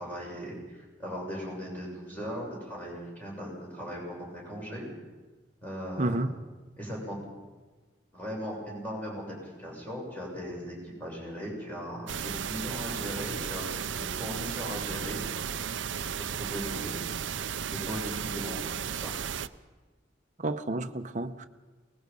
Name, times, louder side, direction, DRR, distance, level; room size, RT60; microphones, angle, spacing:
voice 1, 0.0-4.8 5.6-6.1 6.8-7.2 8.1-15.4 15.9-17.0 17.7-19.1, equal, 10° left, 7.2 m, -38 dB
voice 2, 6.0-6.3 20.4-21.5, right 2 dB, 40° right, 0.9 m, -30 dB
sound 1, 12.1-19.5, right 8 dB, 75° right, 0.6 m, -34 dB
24.0 x 20.0 x 5.5 m
head